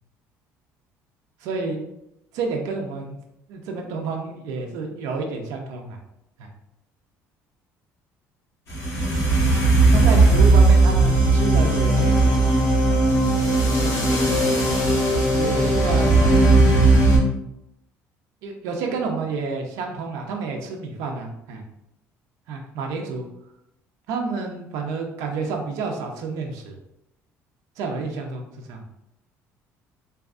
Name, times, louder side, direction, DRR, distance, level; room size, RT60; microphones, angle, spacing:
voice 1, 1.4-1.8 2.3-3.2 3.5-6.0 6.4-6.5 9.9-12.5 15.3-17.2 18.4-21.6 22.5-23.2 24.1-26.8 27.8-28.8, right 4 dB, 75° right, 2 dB, 0.4 m, -30 dB
sound 1, 8.7-17.2, right 2 dB, 60° left, 1.0 m, -17 dB
2.6 x 2.3 x 2.4 m, 0.82 s
cardioid pair, 160°, 6 cm